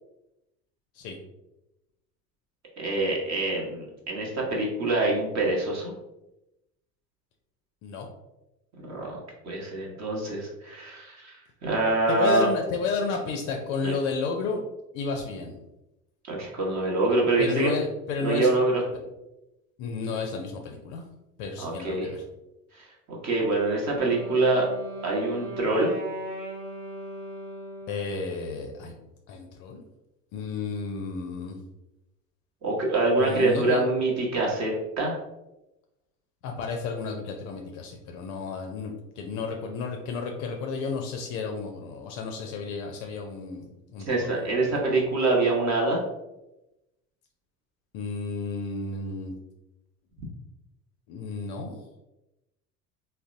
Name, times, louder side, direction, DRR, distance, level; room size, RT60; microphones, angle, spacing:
voice 1, 2.8-5.9 8.9-9.2 9.4-12.5 13.8-13.9 16.3-17.8 18.2-18.8 21.6-22.1 22.7-24.7 25.0-25.9 32.6-35.2 44.1-46.0, right 2 dB, 35° right, -2 dB, 1.0 m, -25 dB
voice 2, 12.1-14.6 14.9-15.6 17.4-18.5 19.8-21.0 21.4-22.2 27.9-28.9 29.3-29.8 30.3-31.6 33.2-33.8 36.4-44.7 47.9-49.4 51.1-51.8, left 4 dB, 40° left, 2 dB, 0.5 m, -32 dB
Wind instrument woodwind instrument, 23.7-28.2, right 1 dB, 85° right, 0.7 m, -38 dB
3.8 x 2.1 x 2.5 m, 0.94 s
figure-of-eight pair, 70°, 47 cm